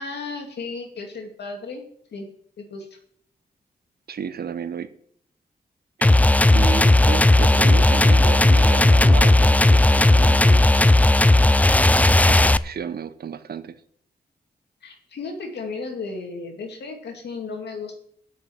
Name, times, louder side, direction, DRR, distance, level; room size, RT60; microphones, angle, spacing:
voice 1, 0.0-1.8 2.1-2.3 2.6-2.9 14.8-18.0, left 4 dB, 90° left, 3 dB, 2.3 m, -34 dB
voice 2, 4.1-4.9 6.0-10.9 11.8-13.7, right 7 dB, 70° right, 12 dB, 0.9 m, -33 dB
sound 1, 6.0-12.6, left 2 dB, 10° left, 0.3 m, -15 dB
8.5 x 6.6 x 8.0 m, 0.65 s
cardioid pair, 80°, 17 cm